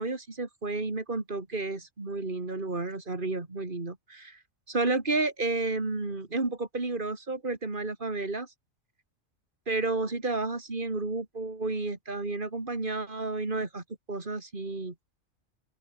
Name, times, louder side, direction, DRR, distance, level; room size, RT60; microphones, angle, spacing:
voice 1, 0.0-4.4 4.7-8.5 9.7-14.9, right 3 dB, 40° right, 3.1 m, -31 dB
open air
omnidirectional pair, 1.4 m